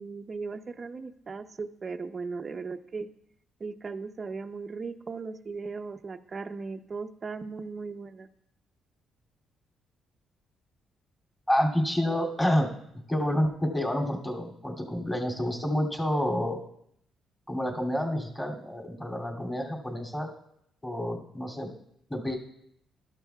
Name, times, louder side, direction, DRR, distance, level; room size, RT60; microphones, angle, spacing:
voice 1, 0.0-3.1 3.6-8.3, right 4 dB, 35° right, 6 dB, 0.7 m, -37 dB
voice 2, 11.5-12.7 13.1-16.6 17.5-20.3 20.8-21.7 22.1-22.4, equal, 15° left, -1 dB, 2.6 m, -28 dB
13.0 x 11.5 x 2.3 m, 0.73 s
cardioid pair, 90°, 0 cm